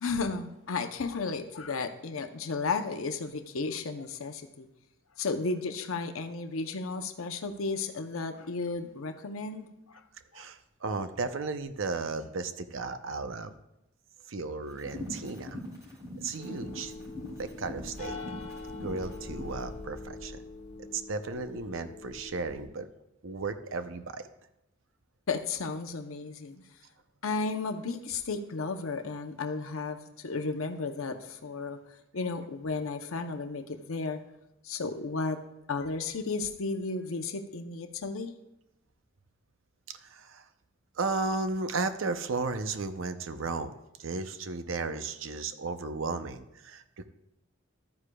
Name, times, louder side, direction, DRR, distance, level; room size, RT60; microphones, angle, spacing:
voice 1, 0.0-4.7 5.2-10.0 10.3-10.4 16.4-16.6 25.3-26.6 27.2-31.8 32.1-34.2 34.6-35.4 35.7-38.3, left 4 dB, 85° left, 7 dB, 0.7 m, -34 dB
voice 2, 10.3-13.5 14.3-15.6 16.2-16.9 17.4-18.2 18.7-20.4 20.9-22.9 23.2-24.2 39.9-40.4 41.0-43.7 44.0-47.1, right 3 dB, 65° right, 10 dB, 0.6 m, -34 dB
sound 1, 14.7-19.6, left 1 dB, 20° right, 3.6 m, -43 dB
sound 2, 16.4-22.7, left 2 dB, 40° left, 1.7 m, -43 dB
13.0 x 9.7 x 2.3 m, 0.88 s
head